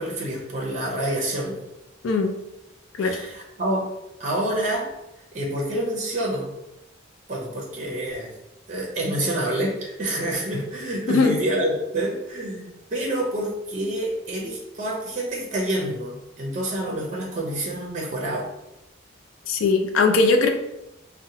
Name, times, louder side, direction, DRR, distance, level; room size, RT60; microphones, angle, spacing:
voice 1, 0.0-1.6 3.0-3.9 4.2-4.9 5.3-6.5 7.3-8.3 8.7-18.5, right 1 dB, 40° right, -2 dB, 0.5 m, -27 dB
voice 2, 19.5-20.5, left 3 dB, 80° left, 5 dB, 0.4 m, -19 dB
2.8 x 2.1 x 2.7 m, 0.90 s
head